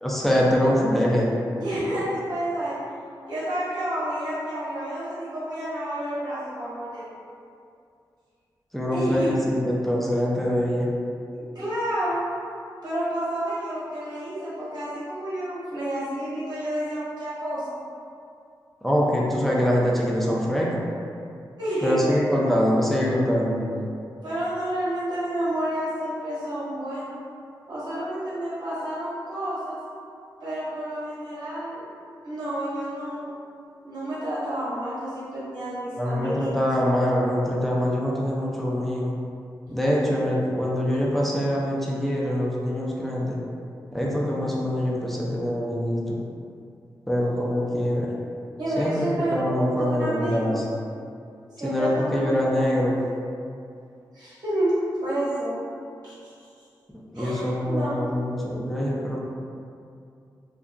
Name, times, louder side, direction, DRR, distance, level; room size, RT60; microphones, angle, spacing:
voice 1, 0.0-1.3 8.7-10.9 18.8-20.8 21.8-23.7 36.0-39.2 39.7-43.4 43.9-46.2 47.1-48.1 48.8-50.6 51.6-52.9 57.1-59.2, equal, ahead, -4 dB, 0.4 m, -24 dB
voice 2, 1.6-2.8 3.3-7.1 8.9-9.3 11.4-12.2 12.8-17.7 21.6-22.5 24.1-27.1 27.7-29.8 30.4-31.8 32.2-33.3 33.8-36.5 48.6-49.4 49.8-50.6 51.5-52.5 54.1-54.7 55.0-55.6 56.0-56.5 57.1-57.9, right 1 dB, 60° right, -12 dB, 1.3 m, -30 dB
2.7 x 2.3 x 2.4 m, 2.4 s
wide cardioid pair, 90°, 8 cm